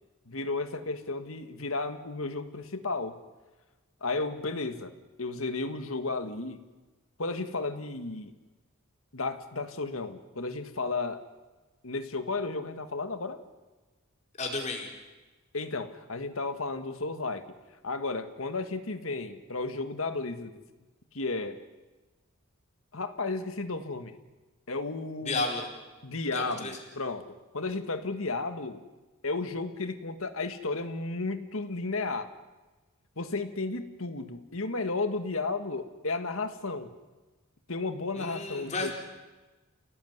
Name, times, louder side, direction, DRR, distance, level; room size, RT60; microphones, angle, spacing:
voice 1, 0.3-3.2 4.0-4.9 5.2-6.6 7.2-8.3 9.1-11.2 11.8-13.4 15.5-17.5 17.8-20.6 21.1-21.6 22.9-24.2 24.7-25.5 26.0-28.8 29.2-32.3 33.2-36.9 37.7-38.9, left 3 dB, 75° left, 9 dB, 1.9 m, -33 dB
voice 2, 14.4-14.9 25.3-25.7 26.3-26.8 38.2-38.9, left 3 dB, 35° left, 2 dB, 4.4 m, -32 dB
29.5 x 18.0 x 9.6 m, 1.2 s
head